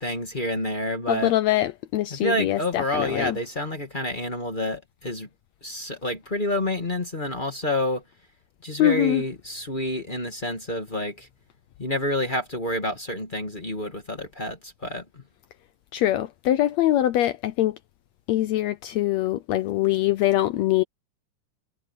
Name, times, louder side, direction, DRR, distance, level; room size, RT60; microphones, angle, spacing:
voice 1, 0.0-1.3 2.1-5.3 5.6-8.0 8.6-11.3 11.8-15.2, left 1 dB, 25° left, 1.3 m, -28 dB
voice 2, 1.1-3.4 8.8-9.2 15.9-17.8 18.3-20.8, left 14 dB, 75° left, 1.6 m, -23 dB
omnidirectional pair, 3.7 m